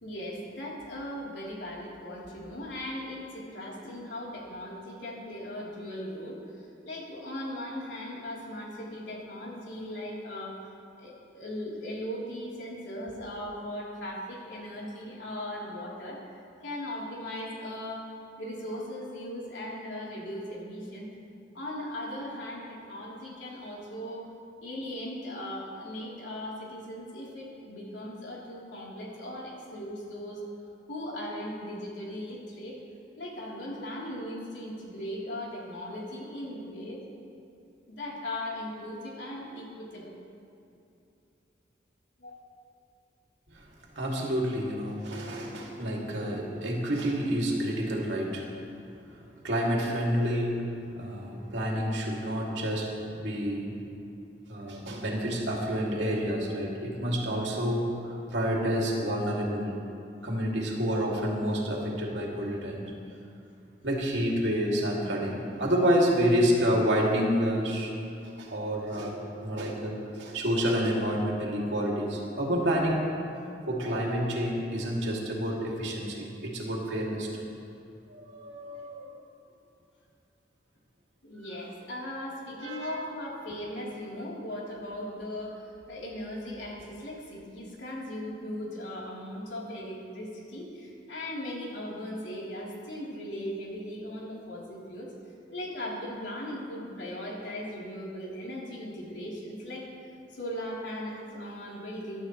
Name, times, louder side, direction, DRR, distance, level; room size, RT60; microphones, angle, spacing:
voice 1, 0.0-10.6 11.0-16.2 16.6-18.1 18.4-21.1 21.5-24.3 24.6-30.4 30.9-32.8 33.2-37.0 37.9-40.2 42.2-42.4 81.2-95.1 95.5-99.9 100.3-102.3, left 1 dB, 85° left, -5 dB, 3.6 m, -38 dB
voice 2, 44.0-48.5 49.4-53.8 54.5-59.7 60.2-62.9 63.8-67.9 68.4-73.1 73.7-77.4 78.1-79.2 82.6-83.0, equal, 80° right, -3 dB, 2.7 m, -29 dB
22.5 x 12.0 x 3.2 m, 2.6 s
head